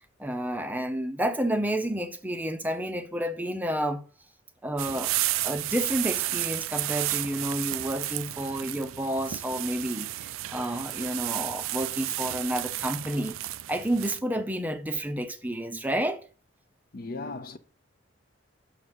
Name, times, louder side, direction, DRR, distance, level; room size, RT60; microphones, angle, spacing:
voice 1, 0.2-4.0 4.6-5.1 5.4-13.4 13.7-16.2, right 1 dB, 10° right, 0.6 m, -30 dB
sound 1, 4.8-14.2, right 15 dB, 90° right, 0.4 m, -32 dB
voice 2, 16.9-17.6, left 3 dB, 45° left, 0.6 m, -36 dB
6.5 x 4.9 x 6.9 m
head